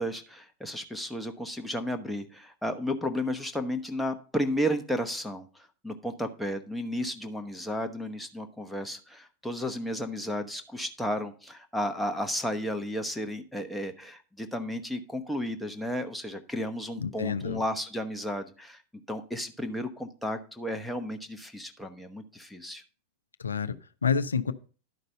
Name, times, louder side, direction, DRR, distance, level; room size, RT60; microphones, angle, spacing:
voice 1, 0.0-18.8 19.1-22.8, equal, ahead, 5 dB, 1.0 m, -33 dB
voice 2, 17.0-17.6 23.4-24.5, left 6 dB, 75° left, 11 dB, 0.5 m, -29 dB
11.5 x 5.2 x 5.3 m, 0.39 s
figure-of-eight pair, 90°, 0 cm